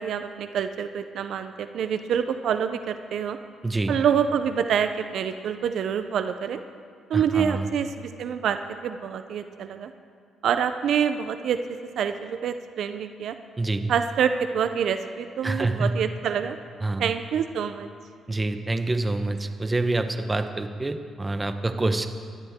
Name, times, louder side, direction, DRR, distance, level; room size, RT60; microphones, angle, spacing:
voice 1, 0.0-3.4 3.9-6.6 7.1-9.9 10.4-11.6 12.0-13.4 13.9-16.6 17.0-17.9, right 8 dB, 70° right, 9 dB, 0.6 m, -26 dB
voice 2, 3.6-4.0 7.1-7.7 13.6-13.9 15.4-16.0 16.8-17.1 18.3-22.1, right 2 dB, 20° right, 8 dB, 1.0 m, -26 dB
21.0 x 14.0 x 3.7 m, 2.2 s
cardioid pair, 90°, 0 cm